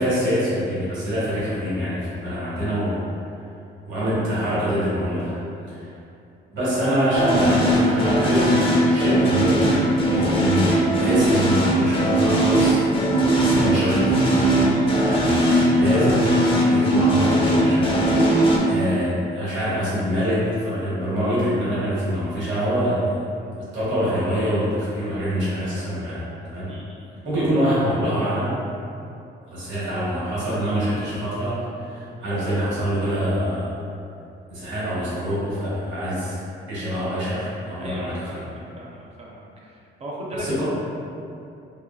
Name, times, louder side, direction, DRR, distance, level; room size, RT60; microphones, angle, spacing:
voice 1, 0.0-3.0 3.9-5.4 5.7-5.9 6.5-12.8 13.3-14.6 15.0-16.3 16.6-18.3 18.7-23.2 23.7-26.7 27.2-28.5 29.5-33.7 34.5-36.4 36.7-38.4 40.4-40.6, equal, 70° right, -10 dB, 1.3 m, -25 dB
sound 1, 7.2-18.6, right 1 dB, 25° left, 0.5 m, -19 dB
voice 2, 15.1-15.5 26.7-27.1 37.8-40.6, right 1 dB, 30° right, -4 dB, 0.6 m, -38 dB
2.9 x 2.2 x 2.2 m, 2.6 s
cardioid pair, 90°, 20 cm